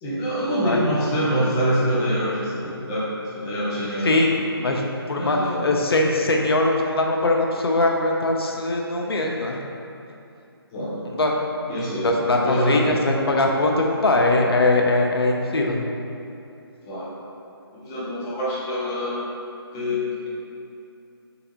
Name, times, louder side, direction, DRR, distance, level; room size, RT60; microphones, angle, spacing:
voice 1, 0.0-2.6 2.9-4.1 5.1-5.6 10.7-11.2 11.7-12.0 12.4-12.8 16.9-17.1 17.7-19.2 19.7-20.3, equal, 10° left, -8 dB, 0.4 m, -25 dB
voice 2, 4.0-9.6 11.0-11.4 12.0-15.8, left 2 dB, 70° left, 0 dB, 0.6 m, -21 dB
4.4 x 3.9 x 2.9 m, 2.7 s
figure-of-eight pair, 155°, 13 cm